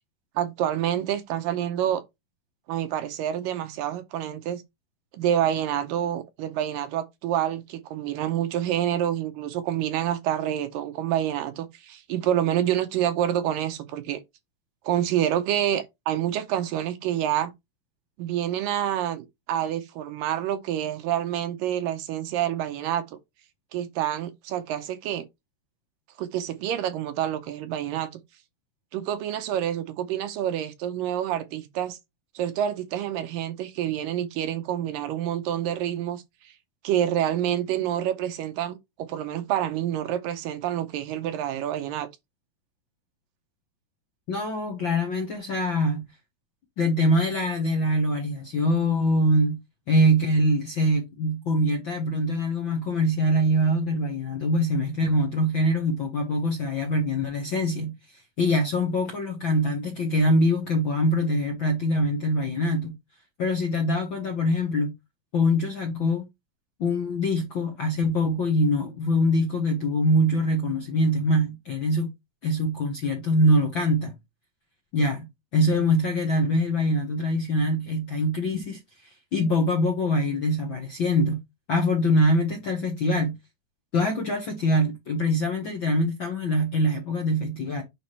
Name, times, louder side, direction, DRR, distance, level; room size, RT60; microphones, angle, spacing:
voice 1, 0.4-2.0 2.7-4.6 5.1-14.2 14.8-17.5 18.2-23.1 23.7-25.3 26.2-28.1 28.9-32.0 32.4-36.5 36.8-42.1, right 11 dB, 75° right, 2.4 m, -27 dB
voice 2, 44.3-46.0 46.8-49.6 49.9-62.9 63.4-64.9 65.3-66.3 66.8-72.1 72.4-74.1 74.9-81.4 81.7-83.4 83.9-87.8, equal, 55° left, 1.4 m, -24 dB
9.1 x 3.8 x 3.3 m
omnidirectional pair, 4.1 m